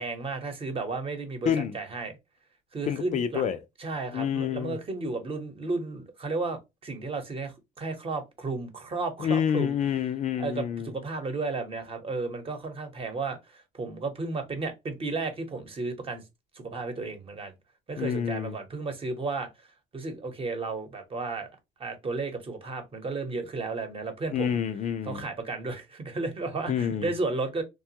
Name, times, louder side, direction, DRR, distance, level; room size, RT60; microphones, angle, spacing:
voice 1, 0.0-2.1 2.7-3.4 3.8-9.8 10.4-16.2 16.5-17.5 17.9-19.5 19.9-21.5 21.8-24.6 25.0-27.6, right 3 dB, 35° right, 0.9 m, -33 dB
voice 2, 2.9-3.6 4.1-4.8 9.2-10.9 18.0-18.6 24.3-25.2 26.7-27.1, left 8 dB, 45° left, 0.4 m, -28 dB
3.0 x 2.2 x 2.8 m
cardioid pair, 110°, 17 cm